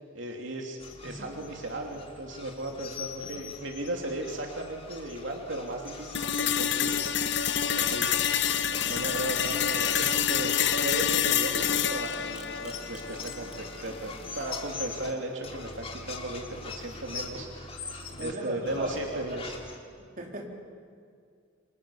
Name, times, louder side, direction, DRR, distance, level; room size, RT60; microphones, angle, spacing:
voice 1, 0.1-7.2 7.7-8.1 8.7-19.5, right 1 dB, 75° right, 1 dB, 2.9 m, -36 dB
sound 1, 0.8-15.1 15.4-18.3 18.7-19.8, left 4 dB, 30° left, 2.8 m, -42 dB
sound 2, 6.1-14.2, left 9 dB, 65° left, 1.0 m, -28 dB
Camera, 8.0-13.5, right 1 dB, 5° right, 1.3 m, -47 dB
voice 2, 18.0-19.4 20.2-20.5, right 1 dB, 45° right, 0 dB, 3.9 m, -38 dB
28.5 x 25.0 x 7.1 m, 2.2 s
head